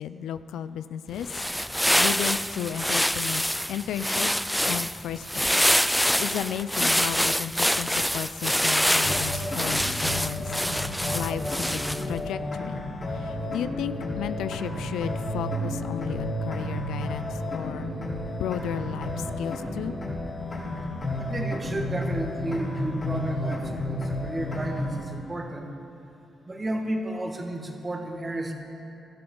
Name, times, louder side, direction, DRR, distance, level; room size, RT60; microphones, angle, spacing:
voice 1, 0.0-1.4 2.0-4.3 4.6-5.6 6.2-10.5 11.1-11.8 12.1-12.8 13.1-17.9 18.3-19.9, left 9 dB, 85° left, 12 dB, 0.4 m, -33 dB
sound 1, 1.1-12.2, equal, ahead, 0.4 m, -25 dB
sound 2, 9.0-25.0, left 1 dB, 45° left, 3.9 m, -32 dB
voice 2, 21.2-25.7 26.5-28.5, right 1 dB, 30° right, 3 dB, 1.9 m, -32 dB
17.0 x 13.0 x 3.9 m, 2.7 s
cardioid pair, 65°, 0 cm